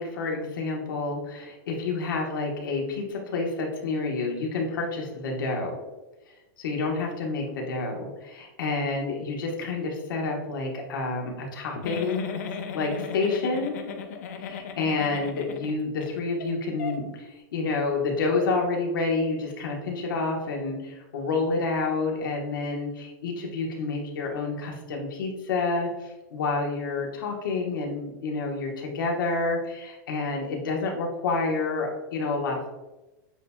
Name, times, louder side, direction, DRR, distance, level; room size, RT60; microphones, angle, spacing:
voice 1, 0.0-5.8 6.6-12.3 12.7-13.7 14.4-32.7, left 3 dB, 70° left, 0 dB, 1.2 m, -29 dB
Giggle, 11.8-16.1 16.4-16.5 16.8-17.0, left 6 dB, 45° left, 0.5 m, -36 dB
7.6 x 2.9 x 2.2 m, 1.1 s
supercardioid pair, 175°, 11 cm